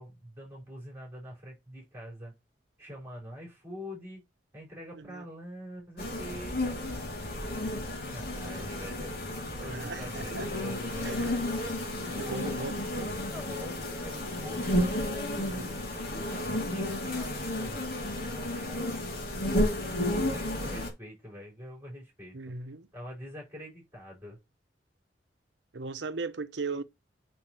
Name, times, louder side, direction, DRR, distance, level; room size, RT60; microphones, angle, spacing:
voice 1, 0.0-2.3 2.8-4.2 4.5-7.0 7.8-9.2 9.6-11.5 12.2-15.8 16.1-17.8 18.3-18.9 20.1-22.5 22.9-24.4, equal, 15° right, 4.8 m, -44 dB
sound 1, 6.0-20.9, left 1 dB, 60° left, 2.6 m, -32 dB
voice 2, 9.6-10.5 11.0-11.4 12.1-12.7 22.3-22.9 25.7-26.8, right 3 dB, 85° right, 0.8 m, -37 dB
9.1 x 5.2 x 3.0 m
head